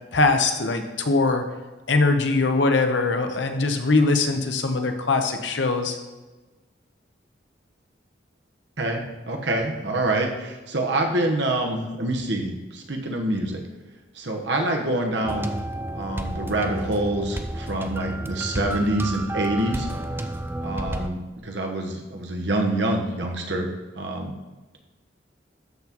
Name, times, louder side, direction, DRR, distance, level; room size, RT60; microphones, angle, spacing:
voice 1, 0.1-1.4 1.9-6.0, left 3 dB, 80° left, 6 dB, 0.9 m, -21 dB
voice 2, 8.8-13.6 14.1-15.5 15.9-19.9 20.6-23.7 23.9-24.3, right 1 dB, 70° right, 2 dB, 1.2 m, -26 dB
sound 1, 15.2-21.1, right 1 dB, 10° right, 0.5 m, -31 dB
13.0 x 5.9 x 3.0 m, 1.2 s
head